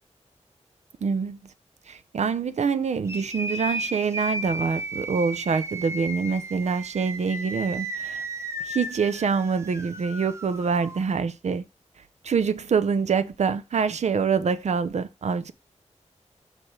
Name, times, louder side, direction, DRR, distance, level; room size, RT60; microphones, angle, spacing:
voice 1, 1.0-1.4 1.9-8.3 8.6-11.6 12.2-15.5, right 5 dB, 70° right, 0.7 m, -25 dB
sound 1, 3.0-11.0, right 1 dB, 25° right, 1.2 m, -34 dB
5.9 x 5.0 x 4.7 m
wide cardioid pair, 125°, 12 cm